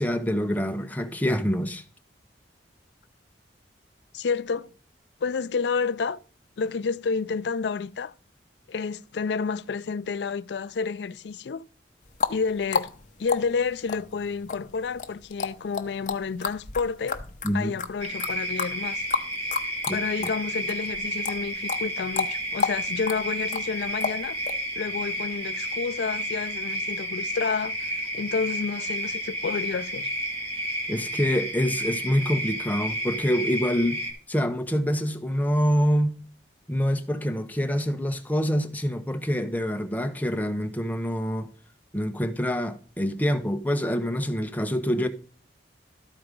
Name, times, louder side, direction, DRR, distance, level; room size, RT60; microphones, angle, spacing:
voice 1, 0.0-1.8 17.4-17.7 19.9-20.3 30.9-34.0 34.3-36.2 36.7-41.5 41.9-45.1, equal, 10° left, 0.8 m, -26 dB
voice 2, 4.1-4.7 5.2-6.2 6.6-8.1 8.7-11.6 12.3-12.9 13.2-17.2 17.5-19.0 19.9-24.4 24.8-27.9 28.1-30.1, left 5 dB, 70° left, 0.4 m, -30 dB
sound 1, 12.0-20.4 20.7-24.6, left 5 dB, 45° left, 0.8 m, -31 dB
sound 2, 18.0-34.1, equal, 30° right, 2.5 m, -31 dB
12.5 x 4.8 x 5.2 m
head